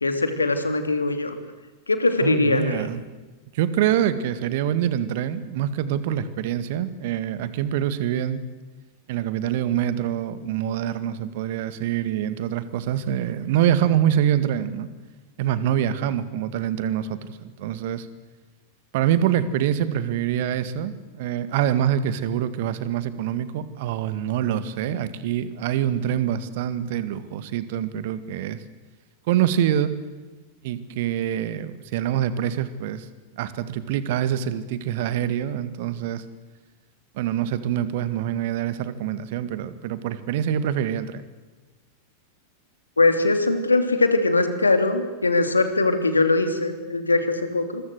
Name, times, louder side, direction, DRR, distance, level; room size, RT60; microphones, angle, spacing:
voice 1, 0.0-1.4 1.9-2.9 43.0-47.8, left 3 dB, 80° left, 9 dB, 2.9 m, -21 dB
voice 2, 2.2-3.0 3.5-8.4 9.1-14.9 15.4-18.1 18.9-28.6 29.3-29.9 30.6-33.1 33.3-36.2 37.1-41.2, right 10 dB, 50° right, 14 dB, 2.0 m, -25 dB
27.0 x 22.5 x 8.1 m, 1.2 s
figure-of-eight pair, 90°, 0 cm